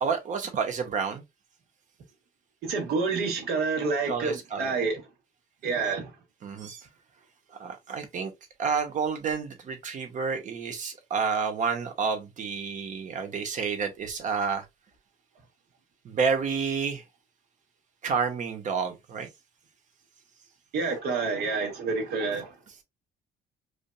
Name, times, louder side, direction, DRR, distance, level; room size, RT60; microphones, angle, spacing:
voice 1, 0.0-1.2 4.1-4.8 6.4-6.9 7.6-8.3 8.6-14.6 16.0-17.0 18.0-19.3, right 5 dB, 45° right, 1.2 m, -29 dB
voice 2, 2.6-5.0 5.6-6.1 20.7-22.5, right 4 dB, 70° right, 1.8 m, -28 dB
4.9 x 2.7 x 2.3 m
cardioid pair, 110°, 17 cm